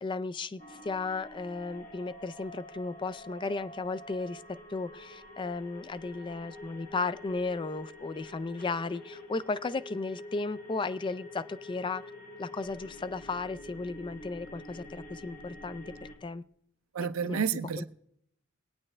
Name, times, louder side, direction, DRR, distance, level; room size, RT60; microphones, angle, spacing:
voice 1, 0.0-12.0 12.4-15.9 16.2-16.4 17.2-17.4 17.8-17.9, left 3 dB, 25° left, 0.4 m, -35 dB
sound 1, 0.6-16.1, left 1 dB, 40° left, 1.9 m, -47 dB
voice 2, 16.9-17.8, right 6 dB, 85° right, 0.5 m, -30 dB
21.5 x 8.8 x 3.3 m
head